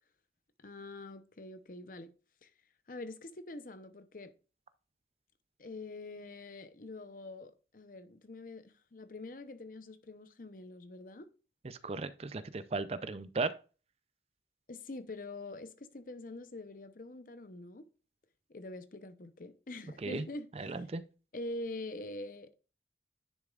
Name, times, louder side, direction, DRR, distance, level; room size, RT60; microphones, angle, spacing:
voice 1, 0.6-2.1 2.4-2.5 2.9-4.3 5.6-11.3 14.7-17.8 18.5-20.8 21.3-22.5, left 2 dB, 50° left, 0.8 m, -45 dB
voice 2, 11.8-13.5 20.0-20.2 20.6-21.0, right 3 dB, 35° right, 0.4 m, -36 dB
10.5 x 6.5 x 2.4 m
head